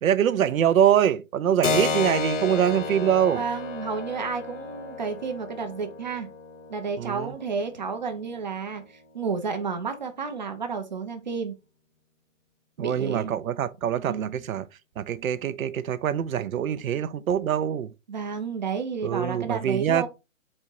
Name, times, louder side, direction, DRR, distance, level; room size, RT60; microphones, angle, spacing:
voice 1, 0.0-3.4 7.0-7.3 12.8-14.6 15.0-17.9 19.0-20.1, right 9 dB, 85° right, 0.6 m, -24 dB
Keyboard (musical), 1.6-9.8, left 4 dB, 60° left, 1.1 m, -33 dB
voice 2, 3.3-6.3 6.7-11.5 12.8-13.4 14.1-14.4 18.1-20.1, right 5 dB, 35° right, 0.6 m, -31 dB
4.3 x 2.5 x 4.5 m
hypercardioid pair, 170°, 40 cm